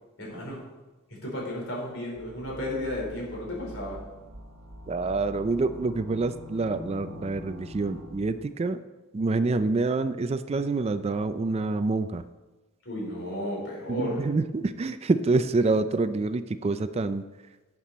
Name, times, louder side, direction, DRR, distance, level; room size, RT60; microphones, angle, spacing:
voice 1, 0.2-0.6 1.1-4.0 12.8-14.2, left 1 dB, 65° left, -3 dB, 4.3 m, -33 dB
sound 1, 2.2-8.5, left 1 dB, 60° right, 1.3 m, -44 dB
voice 2, 4.9-8.8 9.1-12.2 13.9-17.2, right 3 dB, 30° right, 12 dB, 0.3 m, -27 dB
12.0 x 8.4 x 4.2 m, 1.2 s
head